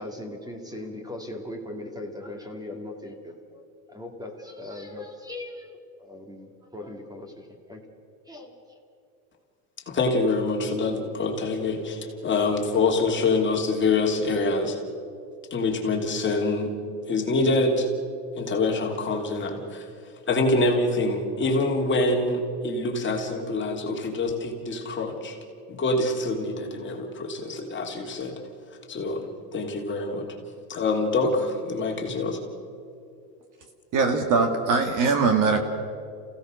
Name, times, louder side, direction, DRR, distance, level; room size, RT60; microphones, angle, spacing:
voice 1, 0.0-7.8 8.3-8.8, left 1 dB, 10° right, 4 dB, 2.5 m, -39 dB
voice 2, 9.9-14.8 15.5-16.7 17.1-17.9 18.4-19.9 20.3-25.4 25.7-28.3 28.9-29.2 29.5-30.3 30.7-32.4, left 3 dB, 25° left, 1 dB, 3.2 m, -25 dB
voice 3, 33.9-35.6, right 4 dB, 40° right, 6 dB, 2.1 m, -21 dB
28.0 x 16.5 x 6.5 m, 2.6 s
supercardioid pair, 130°, 49 cm